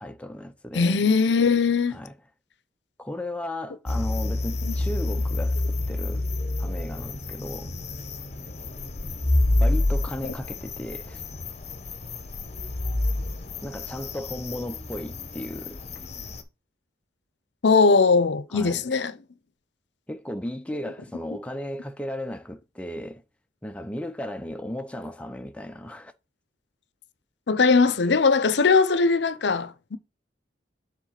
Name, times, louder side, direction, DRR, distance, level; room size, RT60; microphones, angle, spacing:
voice 1, 0.0-1.1 1.9-2.1 3.0-6.3 6.6-7.7 9.6-11.2 13.6-15.8 18.5-18.8 20.1-23.2 23.6-26.1, left 1 dB, 5° left, 0.6 m, -35 dB
voice 2, 0.7-2.0 4.6-4.7 17.6-19.1 27.5-30.0, left 4 dB, 75° left, 0.6 m, -20 dB
sound 1, 3.9-16.4, left 2 dB, 35° left, 1.0 m, -28 dB
7.3 x 3.7 x 5.7 m
head